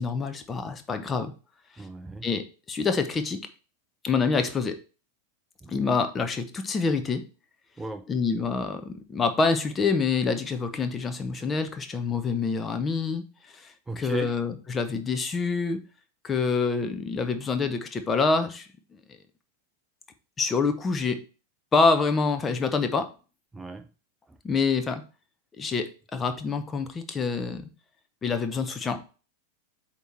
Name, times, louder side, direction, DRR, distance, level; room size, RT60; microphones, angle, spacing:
voice 1, 0.0-1.3 1.8-1.9 2.2-3.4 4.0-4.8 5.7-7.2 8.1-15.8 16.2-18.7 19.1-19.2 20.4-21.2 21.7-23.1 24.4-25.0 25.6-27.7 28.2-29.0, left 4 dB, 20° left, 8 dB, 0.8 m, -26 dB
voice 2, 1.8-2.3 5.6-5.7 7.8-8.1 13.9-14.3 23.5-23.9 24.3-24.4, right 2 dB, 10° right, 8 dB, 0.3 m, -36 dB
8.1 x 3.1 x 4.5 m, 0.35 s
figure-of-eight pair, 90°, 0 cm